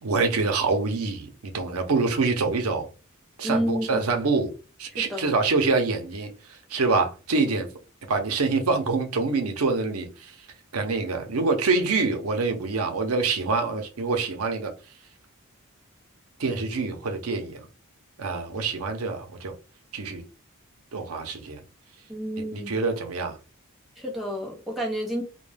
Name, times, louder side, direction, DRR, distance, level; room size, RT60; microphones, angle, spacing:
voice 1, 0.0-2.9 3.4-4.5 4.8-6.3 6.7-7.7 8.1-10.3 10.7-14.7 16.4-17.6 18.2-19.5 19.9-20.2 20.9-21.6 22.5-23.4, right 4 dB, 80° right, 0.6 m, -25 dB
voice 2, 3.4-4.1 5.0-5.3 22.1-22.8 24.0-25.2, equal, ahead, 0.7 m, -30 dB
2.2 x 2.2 x 3.2 m
head